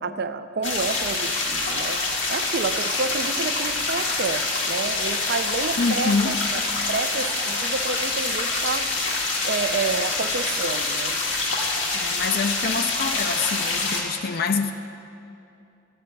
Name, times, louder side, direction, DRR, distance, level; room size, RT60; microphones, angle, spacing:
voice 1, 0.0-2.0 2.3-6.6 6.9-8.9 9.4-11.2, right 4 dB, 55° right, 10 dB, 0.5 m, -29 dB
sound 1, 0.6-14.0, left 3 dB, 80° left, 1.7 m, -26 dB
voice 2, 5.8-6.4 11.9-14.7, left 4 dB, 55° left, 7 dB, 0.4 m, -25 dB
14.0 x 8.4 x 4.5 m, 2.7 s
head